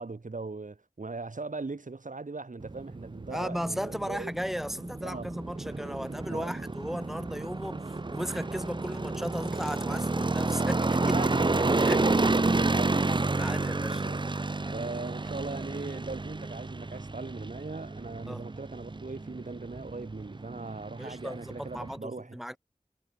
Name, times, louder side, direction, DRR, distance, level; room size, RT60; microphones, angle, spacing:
voice 1, 0.0-4.3 5.0-5.3 6.3-6.5 11.0-13.3 14.0-14.2 14.7-22.4, right 3 dB, 75° right, 5.0 m, -39 dB
sound 1, 2.6-22.0, right 3 dB, 35° right, 0.8 m, -30 dB
voice 2, 3.3-11.1 11.8-12.0 13.4-14.0 18.3-18.5 21.0-22.6, equal, ahead, 1.9 m, -36 dB
wide cardioid pair, 50°, 14 cm